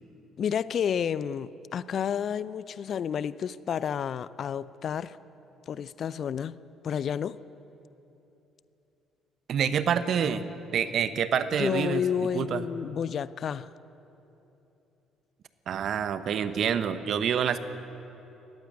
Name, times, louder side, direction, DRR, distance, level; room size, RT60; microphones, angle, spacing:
voice 1, 0.4-5.2 5.7-6.6 6.8-7.4 11.5-13.7, left 8 dB, 55° left, 18 dB, 0.5 m, -30 dB
voice 2, 9.5-10.4 10.7-12.0 12.3-12.6 15.7-17.6, right 8 dB, 55° right, 12 dB, 1.1 m, -27 dB
18.5 x 15.0 x 9.7 m, 3.0 s
hypercardioid pair, 50°, 0 cm